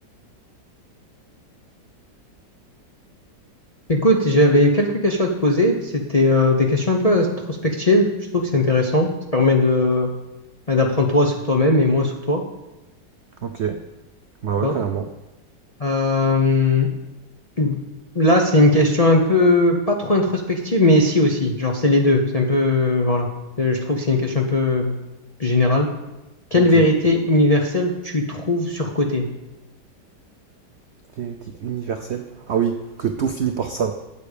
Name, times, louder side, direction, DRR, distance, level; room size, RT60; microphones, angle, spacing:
voice 1, 3.9-8.1 8.3-10.1 10.7-12.4 14.6-14.8 15.8-16.9 17.6-17.8 18.1-23.3 23.6-25.0 25.4-25.9 26.5-29.2, left 2 dB, 35° left, 1 dB, 0.5 m, -18 dB
voice 2, 13.4-13.8 14.4-15.1 26.6-26.9 31.2-33.9, right 7 dB, 80° right, 7 dB, 0.6 m, -25 dB
8.4 x 7.8 x 6.7 m, 0.98 s
omnidirectional pair, 2.0 m